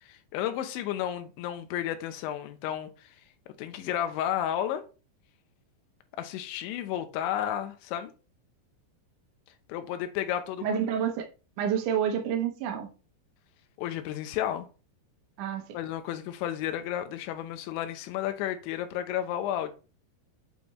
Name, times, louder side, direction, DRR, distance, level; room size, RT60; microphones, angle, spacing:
voice 1, 0.0-3.1 3.6-4.8 6.2-8.1 9.7-10.8 13.8-14.7 15.7-19.7, left 11 dB, 90° left, 3.2 m, -32 dB
voice 2, 10.6-11.3 11.6-12.9 15.4-15.8, right 8 dB, 80° right, 1.8 m, -29 dB
8.9 x 5.1 x 3.1 m
omnidirectional pair, 5.2 m